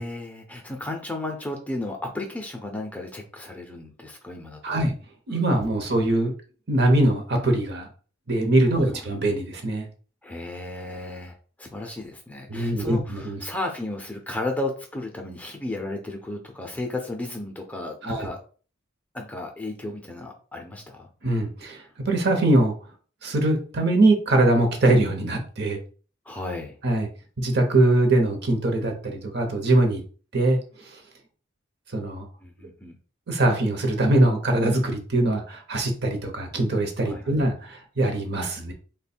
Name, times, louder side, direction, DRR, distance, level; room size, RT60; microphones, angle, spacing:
voice 1, 0.0-4.8 8.8-9.1 10.2-18.4 19.1-21.1 26.3-26.8 32.4-32.9 37.0-37.3, left 2 dB, 10° left, 2 dB, 0.5 m, -34 dB
voice 2, 4.6-4.9 5.3-6.3 6.7-7.9 8.3-9.9 12.5-13.4 18.0-18.3 21.2-22.7 23.2-25.8 26.8-27.1 27.4-30.0 30.3-30.6 30.9-31.0 31.9-32.3 33.3-38.7, right 1 dB, 55° right, 4 dB, 0.8 m, -22 dB
3.0 x 2.2 x 4.2 m, 0.39 s
head